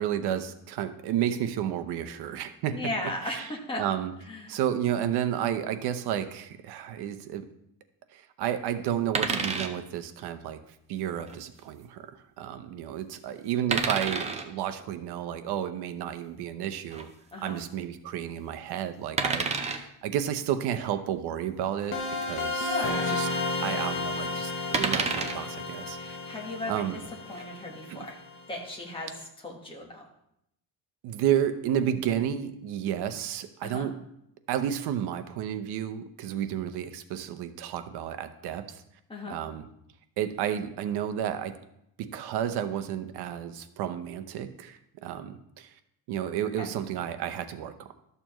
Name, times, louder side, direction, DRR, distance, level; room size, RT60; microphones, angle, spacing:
voice 1, 0.0-2.8 3.2-3.5 3.8-4.1 4.5-7.4 8.1-10.6 10.9-17.1 17.4-22.8 23.1-23.3 23.6-26.2 26.7-27.0 27.9-28.1 31.0-34.0 34.5-38.8 39.3-39.7 40.2-41.5 42.0-45.7 46.1-47.9, right 10 dB, 65° right, 9 dB, 0.8 m, -31 dB
voice 2, 2.7-3.8 4.3-4.5 17.3-17.6 22.7-23.1 25.9-27.0 27.3-28.2 28.5-29.1 29.4-30.1 33.6-33.9 39.1-39.4 46.6-46.7, left 2 dB, 10° left, -1 dB, 1.3 m, -36 dB
sound 1, 9.1-9.7 11.2-11.4 13.7-14.5 16.9-17.0 19.2-19.8 21.8-21.9 22.2-22.3 24.7-25.4 27.1-27.4, right 4 dB, 15° right, 0.4 m, -29 dB
sound 2, 21.9-28.6, left 3 dB, 30° left, 0.8 m, -32 dB
12.5 x 6.8 x 3.0 m, 0.77 s
cardioid pair, 175°, 42 cm